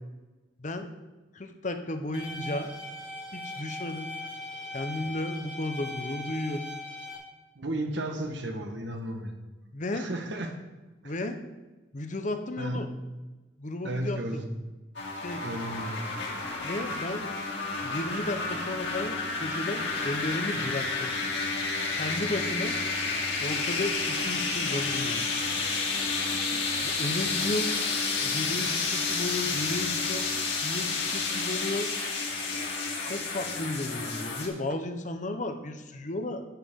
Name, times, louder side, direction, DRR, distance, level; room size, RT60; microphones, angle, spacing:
voice 1, 1.3-2.7 3.3-4.1 4.7-6.7 9.7-10.0 11.0-11.4 11.9-12.9 13.6-14.4 15.1-15.4 16.6-17.3 17.8-21.1 21.9-22.8 23.4-25.3 26.8-27.7 28.2-30.3 30.6-31.9 33.0-36.5, left 2 dB, 40° left, 7 dB, 0.8 m, -34 dB
sound 1, 2.1-7.2, left 2 dB, 30° right, 2.5 m, -39 dB
voice 2, 7.6-9.4 9.9-10.6 11.0-11.1 12.6-12.8 13.8-14.4 15.4-16.0, right 1 dB, 70° right, 4 dB, 1.4 m, -33 dB
sound 2, 15.0-34.5, left 3 dB, 70° left, 2.4 m, -30 dB
11.5 x 9.1 x 3.7 m, 1.1 s
head